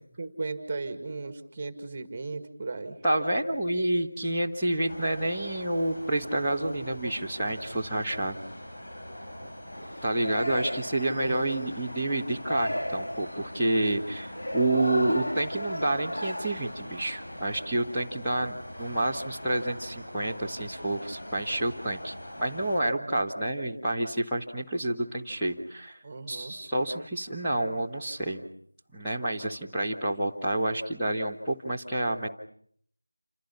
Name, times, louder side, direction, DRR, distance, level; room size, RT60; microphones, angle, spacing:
voice 1, 0.2-3.0 11.1-11.7 22.9-23.2 26.0-26.6, right 3 dB, 20° right, 9 dB, 2.1 m, -37 dB
voice 2, 3.0-8.4 10.0-26.0 26.3-28.4 28.9-32.3, right 1 dB, ahead, -13 dB, 1.9 m, -29 dB
sound 1, 4.9-22.8, left 1 dB, 50° left, 7.2 m, -43 dB
Yell, 9.7-17.4, left 1 dB, 75° left, 3.9 m, -36 dB
28.5 x 28.0 x 5.8 m, 0.62 s
figure-of-eight pair, 175°, 0 cm